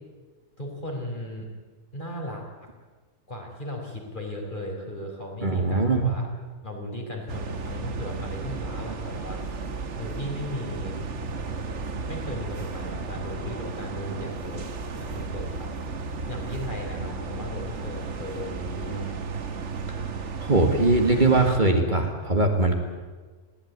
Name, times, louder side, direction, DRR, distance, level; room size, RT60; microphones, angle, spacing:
voice 1, 0.6-1.5 1.9-2.4 3.3-6.3 6.6-9.4 9.9-11.0 12.0-14.7 15.0-15.7 16.3-19.2, equal, 40° left, 0 dB, 5.0 m, -36 dB
voice 2, 5.4-6.0 20.4-22.8, right 2 dB, 35° right, 3 dB, 2.2 m, -21 dB
sound 1, 7.3-21.6, right 4 dB, 65° right, 1.6 m, -34 dB
21.0 x 16.5 x 9.6 m, 1.4 s
omnidirectional pair, 1.3 m